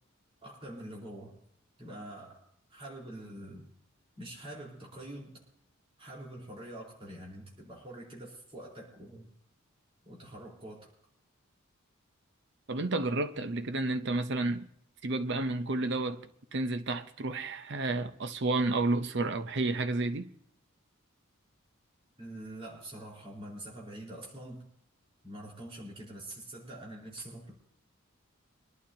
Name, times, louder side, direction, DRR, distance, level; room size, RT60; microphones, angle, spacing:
voice 1, 0.4-1.4 1.8-2.4 2.7-3.7 4.2-5.4 6.0-9.3 10.0-10.9 22.2-24.6 25.2-27.5, right 1 dB, 25° right, 4.2 m, -45 dB
voice 2, 12.7-14.7 15.0-16.2 16.5-20.3, right 2 dB, 55° right, 0.7 m, -31 dB
24.5 x 11.5 x 2.8 m
head